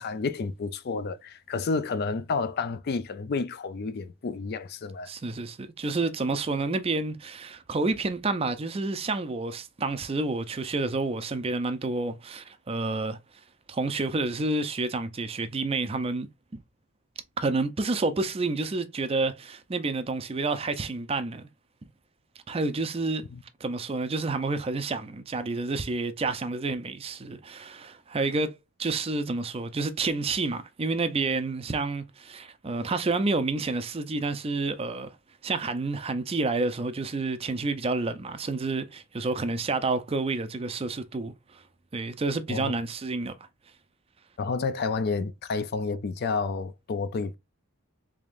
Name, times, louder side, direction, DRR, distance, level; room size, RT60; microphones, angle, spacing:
voice 1, 0.0-5.1 23.3-23.4 42.5-42.7 44.4-47.4, left 4 dB, 50° left, 0.4 m, -30 dB
voice 2, 5.1-13.2 13.7-16.3 17.4-21.5 22.5-23.2 23.6-35.2 35.4-41.6 41.9-43.3, right 3 dB, 25° right, 0.5 m, -29 dB
3.5 x 3.5 x 2.4 m
head